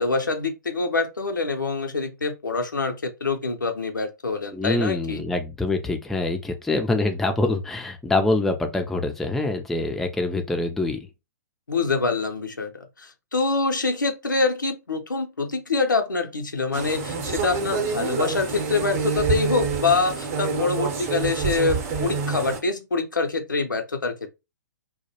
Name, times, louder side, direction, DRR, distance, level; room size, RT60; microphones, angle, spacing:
voice 1, 0.0-5.2 11.7-24.1, left 3 dB, 85° left, 0.5 m, -25 dB
voice 2, 4.5-11.1, left 2 dB, 5° left, 0.3 m, -25 dB
sound 1, 16.7-22.6, right 5 dB, 40° right, 0.7 m, -27 dB
2.2 x 2.0 x 2.7 m
figure-of-eight pair, 120°, 10 cm